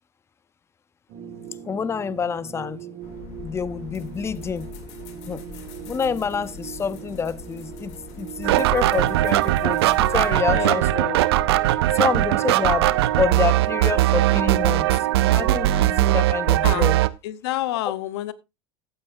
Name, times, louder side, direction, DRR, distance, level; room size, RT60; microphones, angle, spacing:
sound 1, 1.1-15.9, right 9 dB, 50° right, 2.0 m, -40 dB
voice 1, 1.7-2.8 3.4-4.7 5.3-5.4 5.9-10.9 11.9-12.9 13.2-14.9 15.2-17.0, left 6 dB, 20° left, 0.6 m, -27 dB
sound 2, 3.0-10.3, left 7 dB, 60° left, 2.5 m, -42 dB
sound 3, 8.4-17.1, right 15 dB, 80° right, 0.6 m, -20 dB
voice 2, 10.5-11.3 16.6-16.9 17.2-18.3, left 14 dB, 75° left, 0.9 m, -29 dB
14.5 x 9.6 x 2.6 m
supercardioid pair, 100°, 13 cm